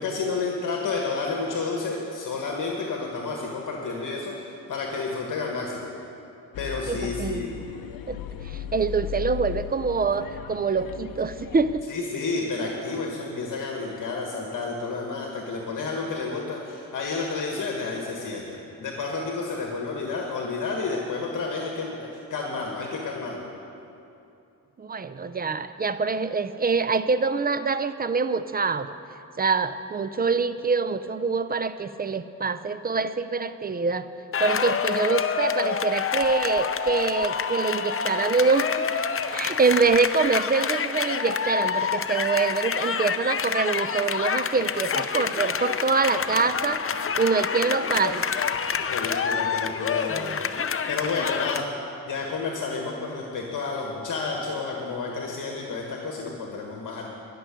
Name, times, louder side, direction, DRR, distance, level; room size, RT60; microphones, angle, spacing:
voice 1, 0.0-5.9 6.6-7.5 11.9-23.4 48.9-50.3 50.9-51.7 52.1-57.0, left 4 dB, 65° left, 0 dB, 1.6 m, -30 dB
sound 1, 6.5-11.8, left 10 dB, 80° left, 0.6 m, -37 dB
voice 2, 6.9-7.6 8.1-11.9 24.8-29.0 29.4-34.1 34.4-38.9 39.3-46.8 47.2-48.2 50.1-50.4, right 4 dB, 25° right, 12 dB, 0.5 m, -25 dB
sound 2, 34.3-51.6, left 7 dB, 40° left, 0.7 m, -27 dB
12.5 x 6.9 x 10.0 m, 2.7 s
cardioid pair, 85°, 34 cm